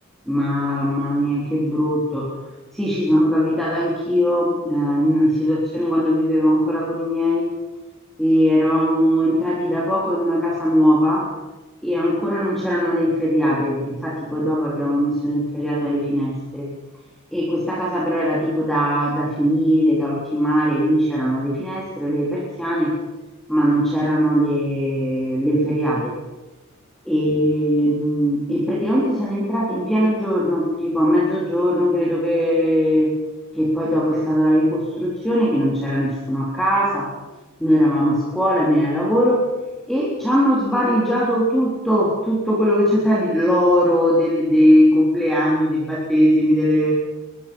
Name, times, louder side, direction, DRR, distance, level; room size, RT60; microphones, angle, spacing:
voice 1, 0.3-2.4 2.7-7.5 8.2-11.3 11.8-16.7 17.3-23.0 23.5-26.1 27.1-33.1 33.5-37.1 37.6-39.5 39.9-46.9, equal, ahead, -5 dB, 3.6 m, -20 dB
23.0 x 21.5 x 5.5 m, 1.1 s
head